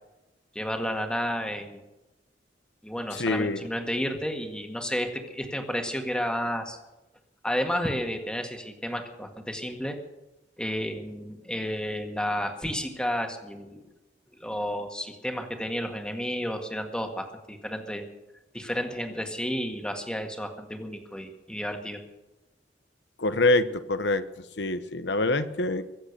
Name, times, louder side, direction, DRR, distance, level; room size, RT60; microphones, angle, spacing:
voice 1, 0.6-1.8 2.8-6.8 7.4-10.0 10.6-13.8 14.4-18.1 18.5-22.0, equal, 5° left, 4 dB, 1.9 m, -31 dB
voice 2, 3.1-3.6 23.2-24.2 24.6-25.8, left 2 dB, 70° left, 12 dB, 1.0 m, -25 dB
23.5 x 7.9 x 6.7 m, 1.0 s
head